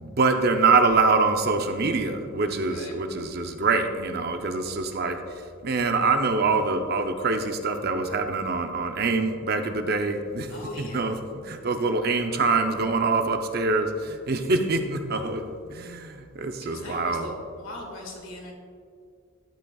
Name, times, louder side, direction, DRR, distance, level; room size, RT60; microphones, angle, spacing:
voice 1, 0.0-5.2 5.6-10.5 10.8-11.2 11.4-15.4 15.7-17.3, right 3 dB, 50° right, 6 dB, 0.6 m, -24 dB
voice 2, 10.5-11.1 16.6-18.5, left 2 dB, 85° left, 0 dB, 1.9 m, -40 dB
12.0 x 8.1 x 2.3 m, 2.2 s
head